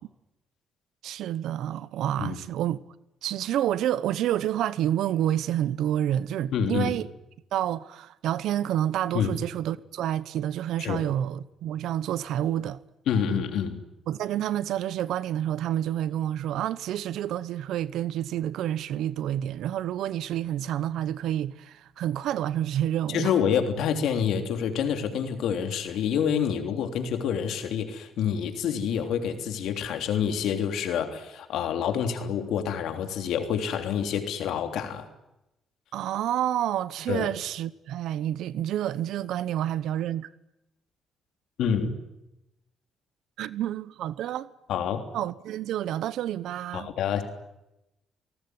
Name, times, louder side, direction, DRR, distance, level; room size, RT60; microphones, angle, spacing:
voice 1, 1.0-2.8 3.2-7.1 7.5-12.8 14.1-23.3 35.9-40.3 43.4-44.5 45.1-46.9, right 11 dB, 80° right, 0.9 m, -29 dB
voice 2, 6.5-6.9 9.1-9.3 10.8-11.1 13.1-13.8 23.1-35.1 37.1-37.3 41.6-41.9 44.7-45.1 46.7-47.2, left 8 dB, 80° left, 3.4 m, -27 dB
28.5 x 18.5 x 9.6 m
cardioid pair, 90°, 0 cm